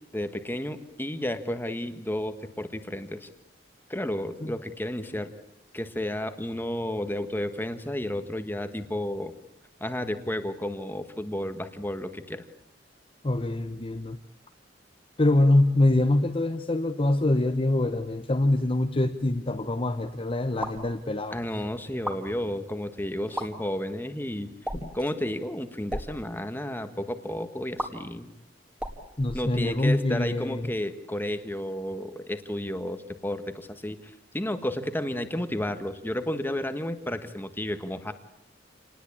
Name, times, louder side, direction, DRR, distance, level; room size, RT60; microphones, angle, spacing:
voice 1, 0.1-3.3 3.9-5.3 5.7-9.3 9.8-12.4 21.3-24.5 24.9-28.3 29.3-34.0 34.3-38.1, left 1 dB, 10° left, 9 dB, 1.5 m, -32 dB
voice 2, 13.2-14.2 15.2-21.4 24.8-24.9 29.2-30.7, left 2 dB, 30° left, 6 dB, 0.9 m, -24 dB
sound 1, 20.6-20.9 21.9-22.2 23.2-23.5 24.6-25.0 25.8-26.1 27.8-27.9 28.7-29.9, equal, 5° right, 2.4 m, -34 dB
27.5 x 19.5 x 8.6 m, 0.85 s
head